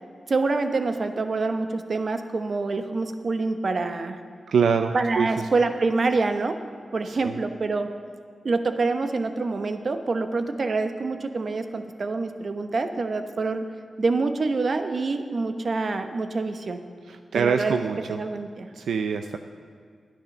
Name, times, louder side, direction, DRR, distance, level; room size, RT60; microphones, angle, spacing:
voice 1, 0.3-4.2 4.9-6.6 6.9-7.9 8.4-13.7 14.0-16.8 17.3-17.8 18.1-18.7, right 3 dB, 55° right, 7 dB, 1.0 m, -26 dB
voice 2, 4.5-5.3 7.0-7.4 17.1-18.2 18.7-19.4, right 6 dB, 90° right, 7 dB, 0.4 m, -25 dB
11.5 x 10.0 x 6.6 m, 2.1 s
cardioid pair, 60°, 0 cm